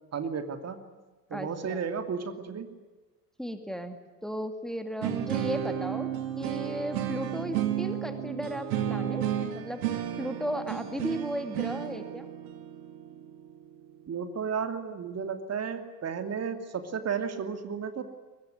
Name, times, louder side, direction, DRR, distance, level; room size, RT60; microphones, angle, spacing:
voice 1, 0.1-0.8 1.3-2.7 14.1-18.0, right 6 dB, 30° right, 8 dB, 2.7 m, -33 dB
voice 2, 1.3-1.8 3.4-6.1 6.4-9.2 9.5-9.8 10.2-12.3, equal, ahead, 7 dB, 2.4 m, -35 dB
sound 1, 5.0-14.0, right 10 dB, 65° right, 3.0 m, -32 dB
23.0 x 20.5 x 9.6 m, 1.3 s
figure-of-eight pair, 65°, 48 cm